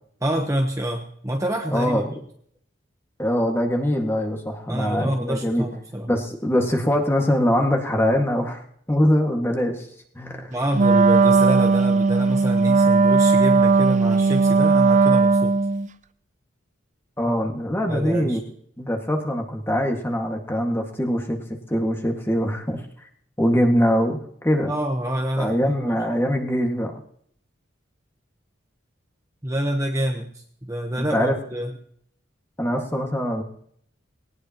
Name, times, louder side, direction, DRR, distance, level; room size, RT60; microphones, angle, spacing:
voice 1, 0.2-2.0 4.7-6.1 10.5-15.6 17.9-18.4 24.7-26.0 29.4-31.7, right 1 dB, 15° right, 2 dB, 1.0 m, -27 dB
voice 2, 1.7-2.1 3.2-5.7 6.1-9.9 10.2-10.6 17.2-18.4 18.8-21.4 21.7-23.1 23.4-24.7 25.4-26.9 31.0-31.4 32.6-33.4, equal, 10° left, 2 dB, 1.8 m, -23 dB
Wind instrument woodwind instrument, 10.7-15.9, right 4 dB, 35° right, 0.5 m, -17 dB
19.5 x 18.0 x 3.0 m, 0.65 s
head